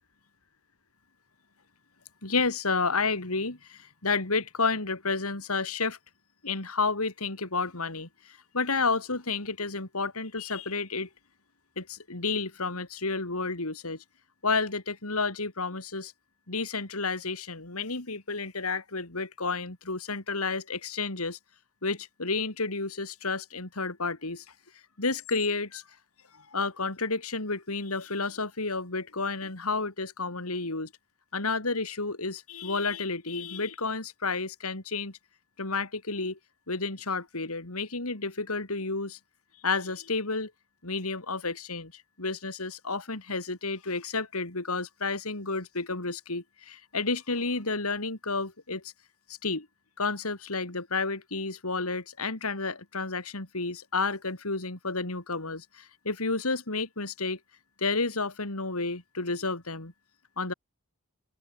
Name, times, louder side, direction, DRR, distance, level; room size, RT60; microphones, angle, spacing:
voice 1, 2.2-6.0 6.4-8.1 8.5-11.1 11.8-14.0 14.4-16.1 16.5-21.4 21.8-24.4 25.0-25.8 26.5-30.9 31.3-35.2 35.6-36.4 36.7-39.2 39.6-40.5 40.8-48.8 49.4-49.7 50.0-57.4 57.8-59.9 60.4-60.5, left 3 dB, 90° left, 3.6 m, -31 dB
head